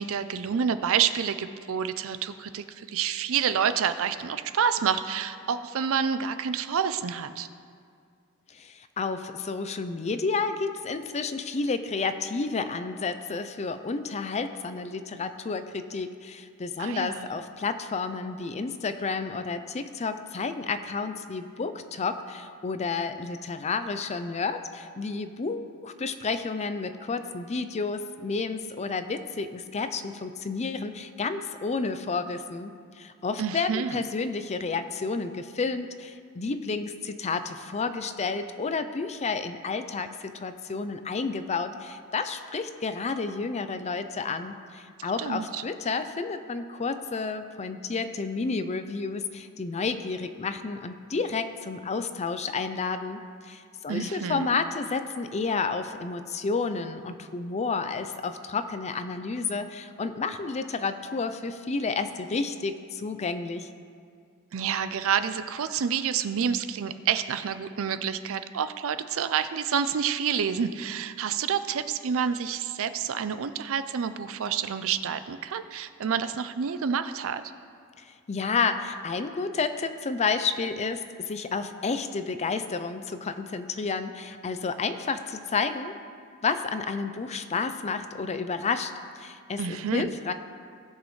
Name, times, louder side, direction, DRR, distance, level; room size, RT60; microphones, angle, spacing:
voice 1, 0.0-7.5 16.8-17.3 33.4-34.0 45.2-45.6 53.9-54.6 64.5-77.4 89.6-90.1, right 7 dB, 65° right, 12 dB, 0.5 m, -28 dB
voice 2, 8.5-63.7 78.0-85.9 86.4-90.3, left 4 dB, 30° left, 10 dB, 0.5 m, -31 dB
18.0 x 6.3 x 3.2 m, 2.2 s
head